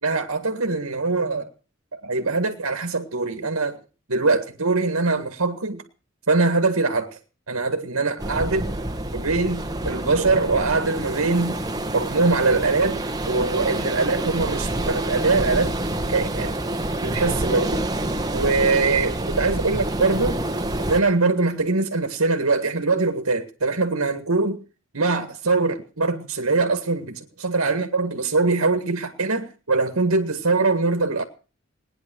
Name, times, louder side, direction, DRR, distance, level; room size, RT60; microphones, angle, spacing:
voice 1, 0.0-1.5 1.9-3.8 4.1-5.8 6.3-7.2 7.5-8.7 9.1-11.6 11.9-13.0 13.3-15.8 16.1-16.6 17.0-17.9 18.3-20.4 20.9-24.6 24.9-31.2, right 3 dB, 90° right, 1.8 m, -22 dB
sound 1, 8.2-21.0, right 1 dB, 20° right, 1.4 m, -27 dB
19.5 x 10.5 x 6.2 m
head